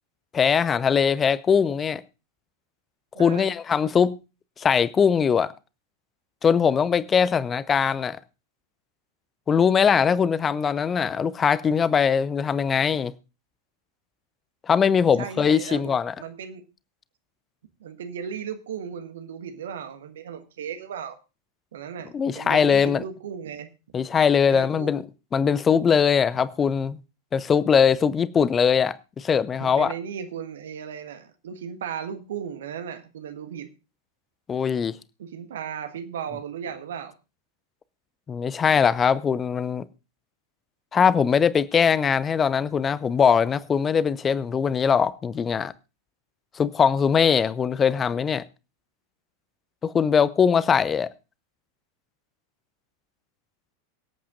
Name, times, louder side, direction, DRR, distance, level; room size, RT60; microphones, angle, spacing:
voice 1, 0.3-2.0 3.2-4.2 4.6-5.5 6.4-8.2 9.5-13.1 14.7-16.1 22.1-23.0 23.9-25.0 25.3-27.0 27.3-29.9 34.5-35.0 38.3-39.8 40.9-45.7 46.6-48.4 49.8-51.1, left 7 dB, 20° left, 0.6 m, -21 dB
voice 2, 3.1-3.5 15.0-15.9 16.2-16.6 17.8-21.2 21.7-23.7 24.5-25.0 29.6-33.7 35.2-37.1, right 8 dB, 60° right, 1.4 m, -36 dB
23.5 x 8.5 x 2.5 m
figure-of-eight pair, 90°, 0 cm